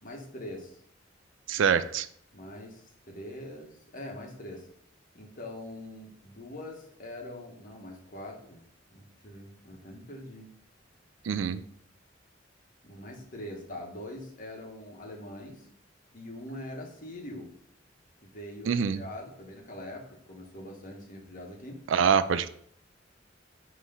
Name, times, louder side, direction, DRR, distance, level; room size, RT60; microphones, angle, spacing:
voice 1, 0.0-0.8 2.3-4.7 5.1-8.6 8.9-10.5 12.8-15.7 16.1-17.5 18.2-21.8, left 1 dB, 45° left, 1 dB, 1.3 m, -43 dB
voice 2, 1.5-2.1 11.3-11.6 18.7-19.0 21.9-22.5, right 6 dB, 80° right, 13 dB, 0.4 m, -25 dB
5.6 x 3.2 x 5.5 m, 0.64 s
head